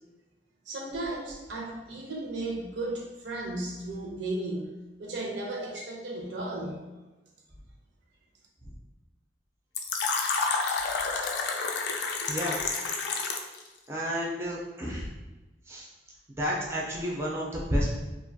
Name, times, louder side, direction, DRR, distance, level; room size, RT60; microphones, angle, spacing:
voice 1, 0.7-4.7 5.0-6.8, right 2 dB, 75° right, 0 dB, 0.5 m, -35 dB
Fill (with liquid), 9.7-13.6, left 4 dB, 65° left, 0.3 m, -29 dB
voice 2, 13.9-15.1 15.7-15.9 16.4-18.0, equal, 15° right, -4 dB, 0.4 m, -30 dB
2.5 x 2.2 x 2.6 m, 1.1 s
head